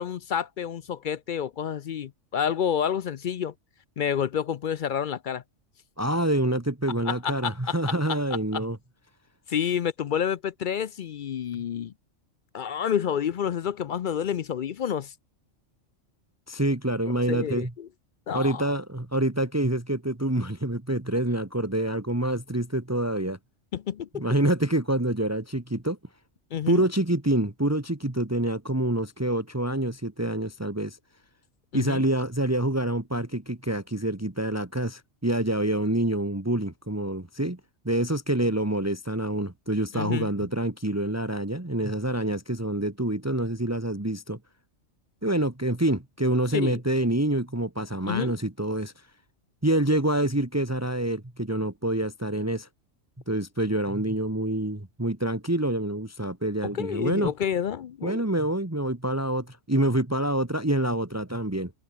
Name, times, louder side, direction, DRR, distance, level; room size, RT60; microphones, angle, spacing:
voice 1, 0.0-3.5 4.0-5.4 7.1-7.7 9.5-11.9 12.5-15.1 17.3-17.9 18.3-18.7 23.7-24.2 26.5-26.8 31.7-32.0 39.9-40.3 46.5-46.8 48.1-48.3 56.7-58.2, left 8 dB, 55° left, 0.5 m, -29 dB
voice 2, 6.0-8.8 11.6-11.7 16.5-17.7 18.3-23.4 24.1-26.0 26.7-31.0 31.7-37.6 37.9-44.4 45.2-49.1 49.6-52.7 53.3-57.3 58.0-61.7, right 1 dB, 10° right, 1.8 m, -27 dB
omnidirectional pair, 1.3 m